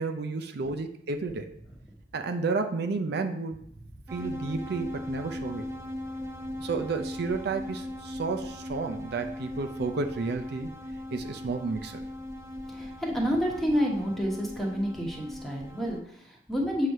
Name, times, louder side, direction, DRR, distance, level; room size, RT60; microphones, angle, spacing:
voice 1, 0.0-1.5 2.1-3.6 4.1-5.6 6.6-10.7 11.1-12.0, right 4 dB, 65° right, 6 dB, 0.5 m, -31 dB
sound 1, 4.1-16.0, left 1 dB, 15° right, 0.6 m, -38 dB
voice 2, 12.7-16.9, equal, ahead, -1 dB, 1.2 m, -29 dB
7.7 x 3.2 x 5.4 m, 0.72 s
head